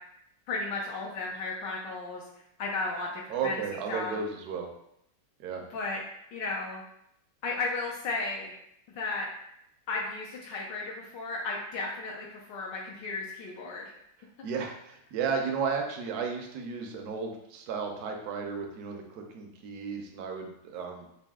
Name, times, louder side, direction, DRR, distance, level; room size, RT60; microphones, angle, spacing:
voice 1, 0.5-2.2 2.6-3.6 3.9-4.2 5.7-6.0 6.3-6.8 7.4-8.5 9.0-9.3 9.9-13.9, left 3 dB, 75° left, -2 dB, 1.3 m, -34 dB
voice 2, 3.3-4.7 5.4-5.6 14.4-21.1, right 5 dB, 70° right, 2 dB, 1.1 m, -34 dB
4.1 x 2.6 x 3.5 m, 0.77 s
omnidirectional pair, 1.9 m